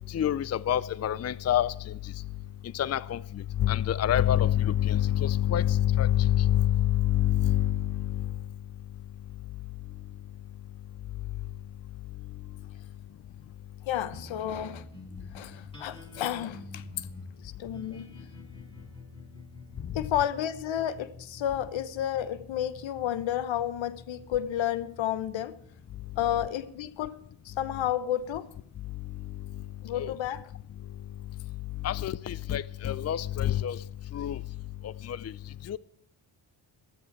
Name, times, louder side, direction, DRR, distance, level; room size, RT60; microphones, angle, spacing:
voice 1, 0.1-2.1 2.6-8.4 29.9-30.1 31.8-33.8 34.1-34.4 34.8-35.4 35.6-35.8, left 11 dB, 35° left, 0.5 m, -26 dB
voice 2, 13.9-14.9 15.3-17.1 17.4-18.1 19.9-25.5 26.2-27.2 27.4-28.5 29.8-30.4, left 11 dB, 75° left, 1.0 m, -31 dB
sound 1, 14.1-28.8, left 3 dB, 10° left, 6.6 m, -48 dB
15.0 x 13.5 x 4.6 m
supercardioid pair, 60°, 46 cm